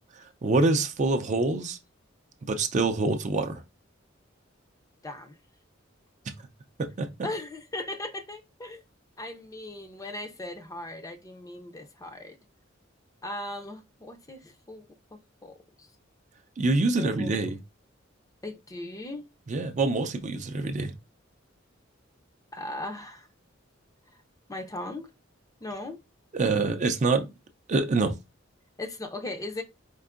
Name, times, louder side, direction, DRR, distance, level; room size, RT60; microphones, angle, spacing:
voice 1, 0.4-1.8 2.5-3.6 6.8-7.1 16.6-17.6 19.5-20.9 26.3-27.3 27.7-28.1, right 3 dB, 35° right, 0.4 m, -25 dB
voice 2, 5.0-5.3 7.2-8.8 9.2-12.4 13.2-14.8 15.1-15.5 15.8-15.9 17.0-17.3 18.4-19.2 22.5-23.3 24.5-25.1 25.6-26.0 28.8-29.6, left 1 dB, 15° left, 0.5 m, -38 dB
4.6 x 2.5 x 2.4 m
head